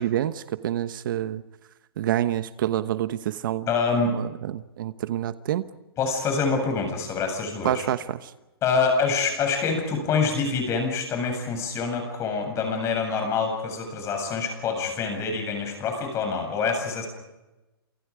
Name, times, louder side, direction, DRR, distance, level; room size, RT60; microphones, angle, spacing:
voice 1, 0.0-1.4 2.0-3.7 4.1-5.6 7.6-8.3, right 12 dB, 55° right, 11 dB, 1.2 m, -27 dB
voice 2, 3.7-4.1 6.0-7.9 8.6-17.1, left 5 dB, 20° left, 5 dB, 7.8 m, -26 dB
28.5 x 28.5 x 5.1 m, 1.0 s
hypercardioid pair, 155°, 13 cm